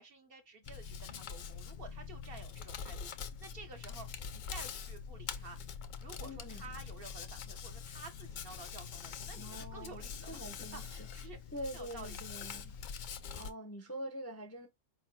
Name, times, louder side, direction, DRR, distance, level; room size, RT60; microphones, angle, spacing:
voice 1, 0.0-4.1 4.3-10.4 10.7-11.4 11.7-12.6, right 4 dB, 50° right, 0.9 m, -52 dB
Hands, 0.6-13.5, left 6 dB, 65° left, 0.4 m, -44 dB
voice 2, 6.2-6.6 9.4-11.1 11.5-12.7 13.3-14.7, equal, 15° left, 0.5 m, -45 dB
4.6 x 3.4 x 2.6 m
omnidirectional pair, 1.3 m